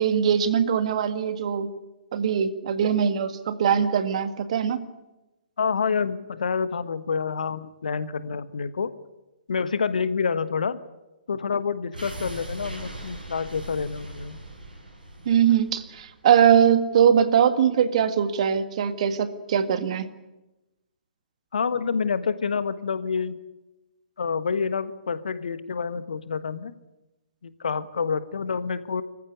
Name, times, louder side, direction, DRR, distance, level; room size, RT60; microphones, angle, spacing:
voice 1, 0.0-1.7 2.1-4.8 15.3-20.1, right 8 dB, 45° right, 10 dB, 1.9 m, -21 dB
voice 2, 5.6-8.9 9.5-10.8 11.3-14.4 21.5-23.4 24.2-26.7 27.4-29.0, left 5 dB, 60° left, 13 dB, 1.3 m, -28 dB
sound 1, 11.9-16.9 17.2-17.3, right 1 dB, 70° right, 7.9 m, -40 dB
26.0 x 15.0 x 9.8 m, 1.0 s
figure-of-eight pair, 125°, 5 cm